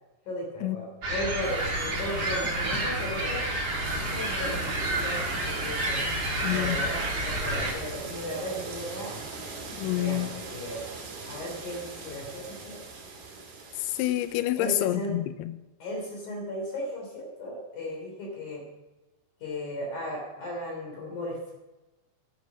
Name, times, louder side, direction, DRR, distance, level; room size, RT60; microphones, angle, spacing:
voice 1, 0.3-3.4 4.0-6.0 6.3-9.4 9.9-10.9 11.2-12.8 14.5-15.1 15.8-18.6 19.4-21.5, left 1 dB, 50° left, -2 dB, 4.7 m, -36 dB
sound 1, 1.0-7.7, right 1 dB, 35° right, 1.8 m, -30 dB
sound 2, 1.4-14.4, right 4 dB, 70° right, 4.3 m, -40 dB
voice 2, 6.4-6.8 9.8-10.3 13.7-15.5, left 15 dB, 80° left, 12 dB, 2.5 m, -28 dB
11.0 x 9.5 x 6.1 m, 1.1 s
omnidirectional pair, 4.7 m